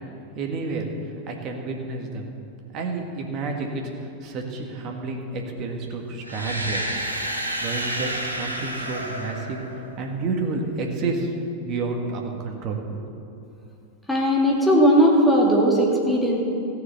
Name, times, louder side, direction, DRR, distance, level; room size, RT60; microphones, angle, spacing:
voice 1, 0.3-0.9 1.3-2.2 2.7-6.9 7.6-9.6 10.0-13.0, right 3 dB, 35° right, 2 dB, 1.8 m, -30 dB
sound 1, 6.2-10.2, right 1 dB, 85° right, 1.3 m, -30 dB
voice 2, 14.1-16.4, equal, 5° left, -3 dB, 2.5 m, -18 dB
15.0 x 6.7 x 7.8 m, 2.6 s
figure-of-eight pair, 90°, 0 cm